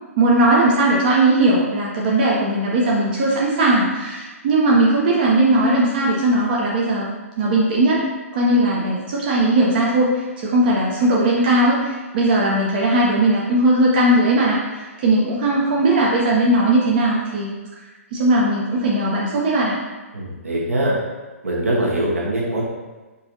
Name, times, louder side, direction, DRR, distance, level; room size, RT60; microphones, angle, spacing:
voice 1, 0.2-8.1 8.3-17.5 18.1-19.8, right 1 dB, 40° right, -4 dB, 0.6 m, -18 dB
voice 2, 20.1-20.9 21.4-22.6, right 1 dB, 70° right, -3 dB, 1.1 m, -22 dB
5.4 x 2.5 x 2.6 m, 1.2 s
figure-of-eight pair, 125°, 8 cm